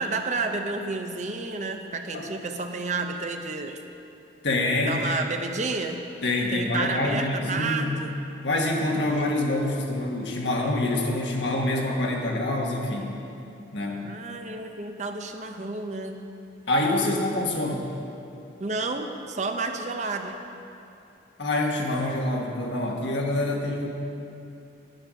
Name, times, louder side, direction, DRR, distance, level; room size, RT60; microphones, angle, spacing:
voice 1, 0.0-3.8 4.9-6.0 6.5-8.1 14.0-16.3 18.6-20.4, right 3 dB, 40° right, 5 dB, 0.7 m, -30 dB
voice 2, 4.4-5.1 6.2-8.0 8.4-13.1 13.7-14.1 16.7-17.9 21.4-23.9, left 2 dB, 80° left, 0 dB, 1.6 m, -26 dB
9.8 x 9.6 x 6.3 m, 2.7 s
head